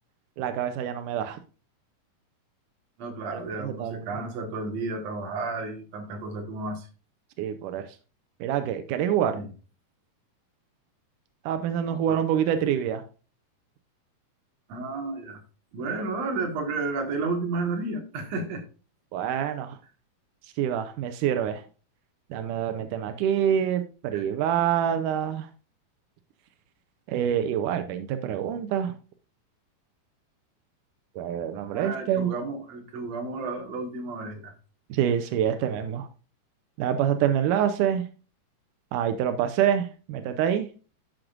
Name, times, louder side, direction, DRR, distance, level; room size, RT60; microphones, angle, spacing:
voice 1, 0.4-1.4 3.3-4.0 7.4-7.9 8.4-9.4 11.5-13.0 19.1-19.8 20.6-21.6 22.3-25.5 27.1-28.9 31.2-32.3 34.9-36.1 36.8-38.0 38.9-40.7, right 9 dB, 85° right, 8 dB, 1.8 m, -26 dB
voice 2, 3.0-6.9 9.3-9.5 11.9-12.2 14.7-15.4 15.7-18.6 24.1-24.3 31.7-34.5, right 3 dB, 55° right, 4 dB, 2.2 m, -32 dB
12.0 x 6.6 x 2.5 m, 0.34 s
omnidirectional pair, 4.5 m